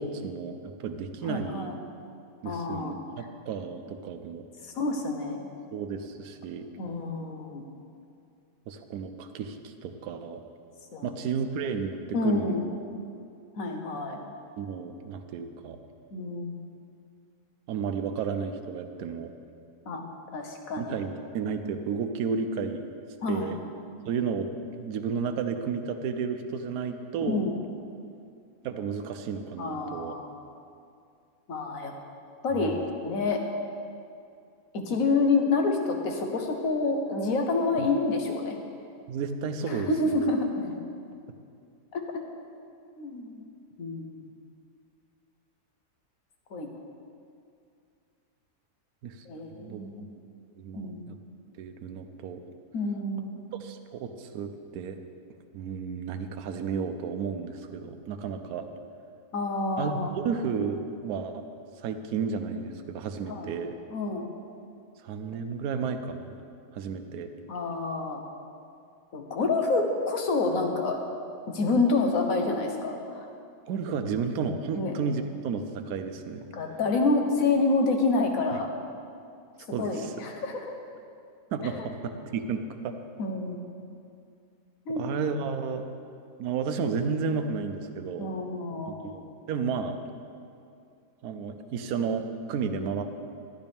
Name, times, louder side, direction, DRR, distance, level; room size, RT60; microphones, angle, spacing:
voice 1, 0.0-1.7 2.4-4.4 5.7-6.7 8.7-10.4 11.0-12.6 14.6-15.8 17.7-19.3 20.8-23.6 24.1-24.5 24.7-27.4 28.6-30.1 32.6-32.9 37.8-37.9 39.1-39.9 49.0-49.2 49.5-50.1 50.6-51.2 51.6-52.4 53.6-55.0 55.5-58.7 59.8-61.4 61.8-63.7 65.0-66.3 66.7-67.3 73.7-76.5 78.5-78.6 79.7-80.1 81.5-83.0 84.9-85.8 86.4-88.3 88.9-90.0 91.2-93.0, right 5 dB, 70° right, 7 dB, 1.1 m, -32 dB
voice 2, 1.2-1.7 2.4-3.0 4.6-5.4 6.8-7.6 10.9-11.1 12.1-12.6 13.6-14.2 16.1-16.5 19.9-20.0 20.3-21.0 23.2-23.6 27.2-27.5 29.6-30.3 31.5-31.9 32.4-33.4 34.7-38.6 39.7-40.8 41.9-42.0 43.0-43.4 43.8-44.2 46.5-46.7 49.3-50.1 50.8-51.0 52.7-53.4 59.3-60.1 63.3-63.5 63.9-64.3 67.5-68.2 69.1-71.0 71.5-73.3 74.7-74.9 76.5-78.7 79.8-80.7 81.7-81.9 83.2-83.6 84.9-85.1 88.2-89.1, left 3 dB, 60° left, 3 dB, 1.4 m, -28 dB
13.0 x 10.5 x 3.5 m, 2.4 s
omnidirectional pair, 1.7 m